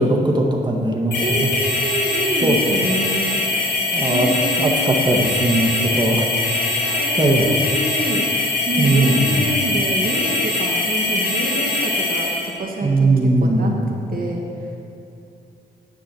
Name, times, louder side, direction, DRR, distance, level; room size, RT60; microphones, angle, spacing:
voice 1, 0.0-1.5 2.4-2.6 3.9-4.3 4.6-6.3 7.2-7.5 8.8-9.3 12.8-13.7, right 2 dB, 25° right, 0 dB, 1.6 m, -19 dB
sound 1, 1.1-12.5, left 2 dB, 90° left, 2.3 m, -22 dB
voice 2, 1.2-3.4 4.1-5.0 6.8-8.3 8.6-14.8, right 2 dB, 55° right, 0 dB, 1.5 m, -27 dB
10.0 x 5.9 x 7.7 m, 2.5 s
cardioid pair, 60°, 17 cm